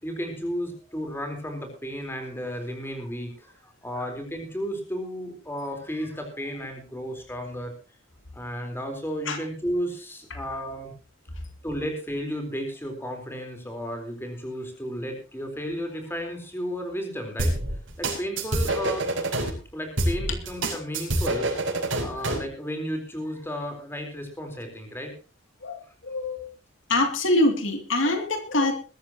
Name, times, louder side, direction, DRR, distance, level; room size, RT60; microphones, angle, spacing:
voice 1, 0.0-7.7 8.3-10.9 11.6-17.5 18.0-19.2 19.7-21.5 22.0-25.1, equal, 10° left, 3 dB, 4.1 m, -33 dB
sound 1, 17.4-19.5 20.0-22.5, right 1 dB, 80° right, 6.1 m, -26 dB
voice 2, 25.6-26.5 26.9-28.7, left 2 dB, 75° left, 5 dB, 2.8 m, -24 dB
21.5 x 13.0 x 3.0 m, 0.35 s
head